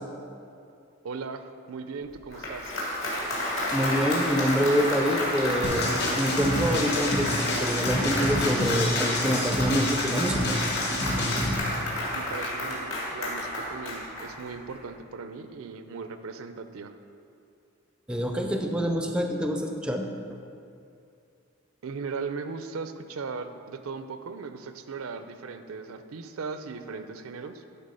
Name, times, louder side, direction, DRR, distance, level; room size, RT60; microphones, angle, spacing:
voice 1, 1.0-2.8 12.1-17.0 21.8-27.6, right 4 dB, 75° right, 9 dB, 0.5 m, -38 dB
Applause, 2.2-14.7, left 1 dB, 65° left, 2.0 m, -30 dB
voice 2, 3.7-10.6 18.1-20.1, equal, 5° right, 3 dB, 0.4 m, -26 dB
sound 1, 5.6-11.6, left 1 dB, 50° left, 1.2 m, -29 dB
11.5 x 4.1 x 5.5 m, 2.5 s
head